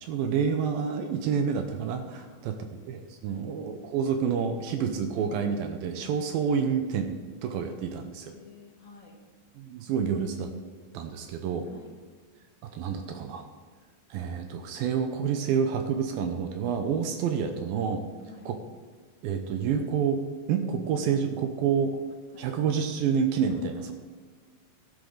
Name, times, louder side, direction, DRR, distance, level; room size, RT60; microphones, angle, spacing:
voice 1, 0.0-8.3 9.6-10.5 10.9-11.7 12.6-13.5 14.1-18.0 18.5-18.6 19.2-20.2 20.5-22.0 22.4-23.9, right 7 dB, 75° right, 7 dB, 2.4 m, -28 dB
voice 2, 2.2-2.8 3.3-3.4 7.8-9.1 11.7-11.9 18.3-18.5 22.3-22.5, left 4 dB, 20° left, -3 dB, 1.1 m, -53 dB
14.0 x 11.0 x 3.9 m, 1.4 s
omnidirectional pair, 4.6 m